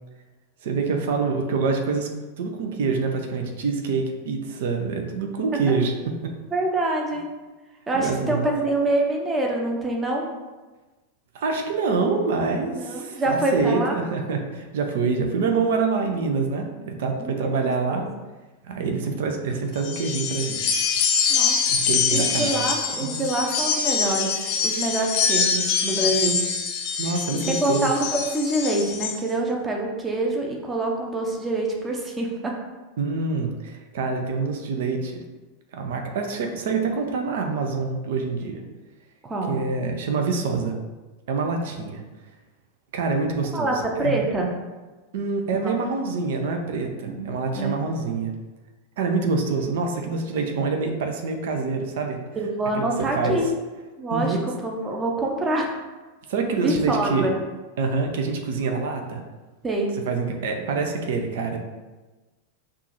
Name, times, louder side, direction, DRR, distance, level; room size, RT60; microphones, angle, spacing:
voice 1, 0.6-2.1 2.4-5.9 6.2-6.3 7.9-8.5 11.3-18.1 18.6-20.9 21.7-22.6 23.0-23.1 27.0-27.9 33.0-35.2 35.7-38.6 39.5-40.7 41.3-42.0 42.9-43.7 44.0-44.2 45.1-48.3 49.0-52.2 52.7-53.4 54.1-54.4 56.3-57.3 57.8-59.2 60.1-61.6, right 4 dB, 55° right, 4 dB, 0.6 m, -26 dB
voice 2, 6.5-7.3 7.9-10.3 12.7-14.0 17.2-18.0 21.3-21.6 22.1-24.3 24.6-26.4 27.4-32.6 39.2-39.6 43.5-44.5 45.6-45.8 47.0-47.7 52.4-53.5 54.0-54.4 54.6-55.8 56.6-57.3 59.6-59.9, right 2 dB, 15° right, 0 dB, 0.8 m, -25 dB
sound 1, 19.8-29.2, left 6 dB, 45° left, 0.6 m, -24 dB
5.8 x 2.5 x 2.9 m, 1.2 s
figure-of-eight pair, 90°, 0 cm